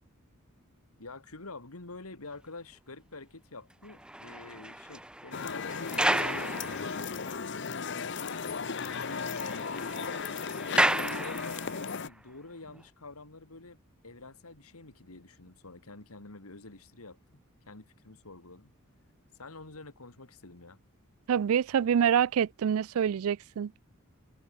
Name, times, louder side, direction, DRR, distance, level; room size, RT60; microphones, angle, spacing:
voice 1, 1.0-7.3 8.2-8.4 8.9-10.2 10.8-13.8 14.0-17.2 17.7-18.7 19.4-20.8, left 3 dB, 85° left, 2.5 m, -47 dB
sound 1, 3.8-7.5 7.8-7.9 8.3-8.4 8.7-11.9 12.6-12.8, right 1 dB, 5° right, 0.9 m, -33 dB
sound 2, 5.3-12.1, left 5 dB, 55° left, 0.8 m, -36 dB
voice 2, 21.3-23.7, right 8 dB, 80° right, 0.4 m, -26 dB
head